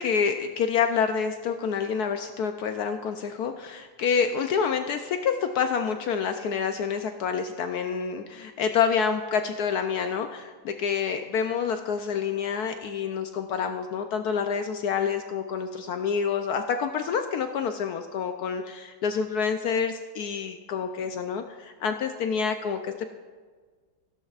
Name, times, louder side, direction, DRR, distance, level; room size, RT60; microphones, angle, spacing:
voice 1, 0.0-23.1, left 6 dB, 80° left, 7 dB, 0.8 m, -28 dB
16.0 x 11.5 x 2.4 m, 1.5 s
omnidirectional pair, 2.2 m